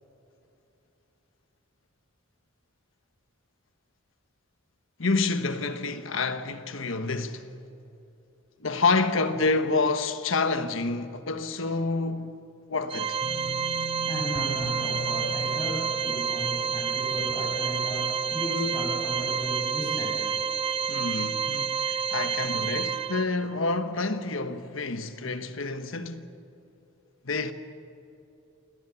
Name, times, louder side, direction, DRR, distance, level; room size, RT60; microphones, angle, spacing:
voice 1, 5.0-7.5 8.6-12.4 12.7-13.2 20.9-26.3 27.2-27.5, left 3 dB, 70° left, 1.3 m, -28 dB
Organ, 12.9-23.6, right 6 dB, 25° right, 0.5 m, -29 dB
sound 1, 13.2-20.1 20.4-20.9 21.3-21.4, left 1 dB, 50° right, 3.6 m, -41 dB
voice 2, 14.0-20.3, equal, 15° left, 6.6 m, -35 dB
28.5 x 19.0 x 7.1 m
head